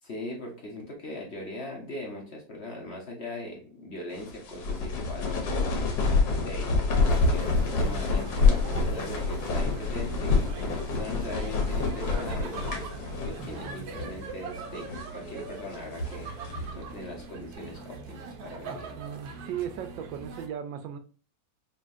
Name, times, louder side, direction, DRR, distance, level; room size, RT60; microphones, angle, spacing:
voice 1, 0.0-6.0 6.3-6.8 7.1-16.3 16.7-18.8, left 1 dB, 45° left, 1.0 m, -40 dB
sound 1, 4.2-13.7 14.0-14.1 14.7-15.2 15.7-16.8, left 3 dB, 75° left, 1.7 m, -27 dB
sound 2, 6.9-20.5, right 4 dB, 65° right, 1.1 m, -41 dB
voice 2, 13.3-13.9 18.6-21.0, right 9 dB, 80° right, 1.4 m, -37 dB
5.5 x 2.9 x 2.6 m
omnidirectional pair, 2.1 m